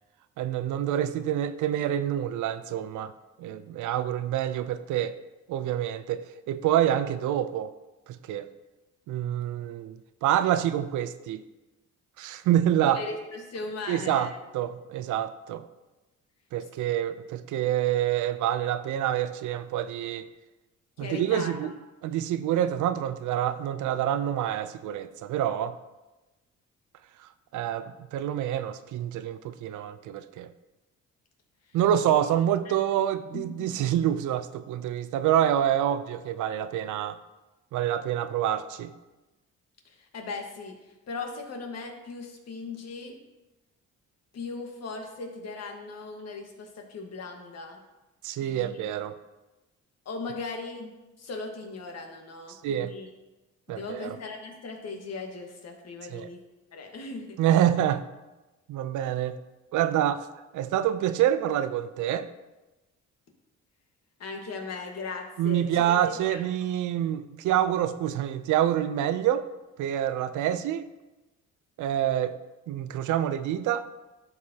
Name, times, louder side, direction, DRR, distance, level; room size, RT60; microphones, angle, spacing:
voice 1, 0.4-3.1 3.4-5.1 5.5-7.7 8.1-8.5 9.1-11.4 12.2-13.0 13.9-15.6 16.5-20.3 21.0-21.7 22.0-25.7 27.2-30.5 31.7-37.2 37.7-38.9 48.2-49.2 52.6-52.9 53.7-54.2 56.1-56.3 57.4-58.0 58.7-59.4 59.7-60.3 60.5-62.3 65.4-69.4 69.8-70.9 71.8-72.4 72.7-73.9, right 11 dB, 80° right, 12 dB, 0.5 m, -27 dB
voice 2, 12.8-14.3 21.0-21.7 32.0-32.1 32.6-32.7 33.3-33.8 39.8-43.2 44.3-47.8 48.4-48.8 50.0-53.1 53.7-56.4 56.7-57.4 64.2-66.0 66.3-66.4, left 3 dB, 55° left, 3 dB, 1.5 m, -38 dB
12.0 x 4.7 x 2.8 m, 1.1 s
cardioid pair, 90°, 30 cm